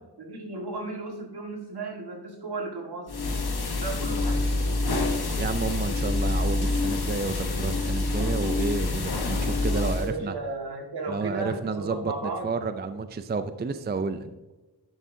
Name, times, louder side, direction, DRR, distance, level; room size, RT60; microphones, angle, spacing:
voice 1, 0.2-3.1 3.7-5.1 8.2-8.3 9.6-12.5, right 3 dB, 65° right, 1 dB, 1.8 m, -35 dB
sound 1, 3.1-10.1, left 2 dB, 65° left, 1.3 m, -27 dB
voice 2, 5.4-10.3 11.1-14.4, right 4 dB, 25° right, 10 dB, 0.4 m, -31 dB
11.0 x 7.3 x 2.7 m, 1.1 s
wide cardioid pair, 70°, 41 cm